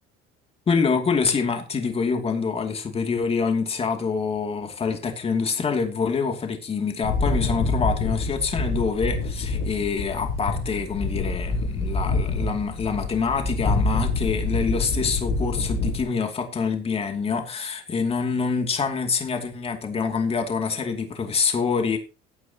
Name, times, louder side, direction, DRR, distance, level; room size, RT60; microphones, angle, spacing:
voice 1, 0.7-22.0, left 5 dB, 30° left, 2.6 m, -26 dB
sound 1, 7.0-16.0, left 3 dB, 70° left, 7.2 m, -26 dB
16.5 x 9.8 x 2.9 m
cardioid pair, 125°, 20 cm